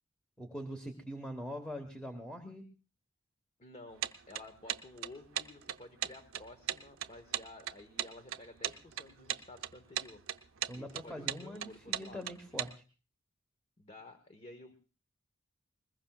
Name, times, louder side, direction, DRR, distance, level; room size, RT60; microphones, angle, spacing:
voice 1, 0.4-2.6 10.7-12.7, equal, 5° left, 5 dB, 1.3 m, -43 dB
voice 2, 3.6-10.2 10.7-12.3 13.8-14.7, left 2 dB, 30° left, 8 dB, 1.2 m, -52 dB
sound 1, 4.0-12.7, right 11 dB, 75° right, 0.7 m, -37 dB
21.0 x 20.5 x 2.4 m, 0.36 s
head